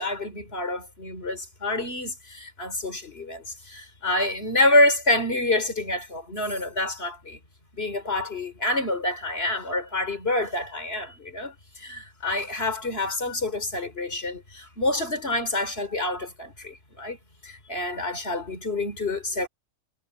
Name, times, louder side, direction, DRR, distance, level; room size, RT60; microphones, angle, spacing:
voice 1, 0.0-7.4 7.7-17.2 17.4-19.5, left 2 dB, 45° left, 3.9 m, -27 dB
omnidirectional pair, 1.4 m